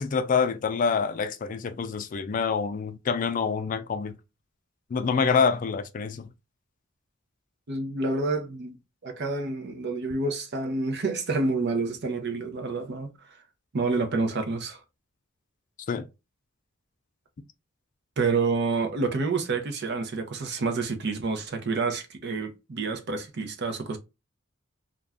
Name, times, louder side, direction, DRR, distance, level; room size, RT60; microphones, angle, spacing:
voice 1, 0.0-4.1 4.9-6.3 15.9-16.0, left 5 dB, 40° left, 0.3 m, -26 dB
voice 2, 7.7-8.8 9.0-13.1 13.7-14.8 18.2-24.0, right 3 dB, 60° right, 0.6 m, -28 dB
2.5 x 2.2 x 3.3 m
head